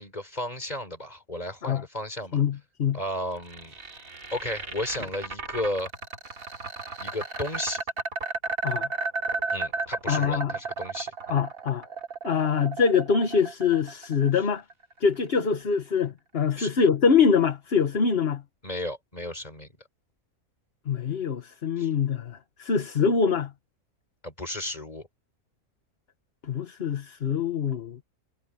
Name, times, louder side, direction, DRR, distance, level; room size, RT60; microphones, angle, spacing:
voice 1, 0.0-2.4 2.9-3.8 4.3-5.9 7.0-7.8 9.5-11.4 16.6-16.7 18.6-19.7 21.8-21.9 24.2-25.1, left 1 dB, 25° left, 4.6 m, -34 dB
voice 2, 2.3-3.0 8.6-8.9 10.1-10.5 11.3-11.9 12.2-14.6 15.0-18.4 20.9-23.5 26.5-28.0, left 6 dB, 45° left, 1.5 m, -24 dB
sound 1, 3.1-15.2, right 4 dB, 65° right, 3.2 m, -33 dB
omnidirectional pair, 1.5 m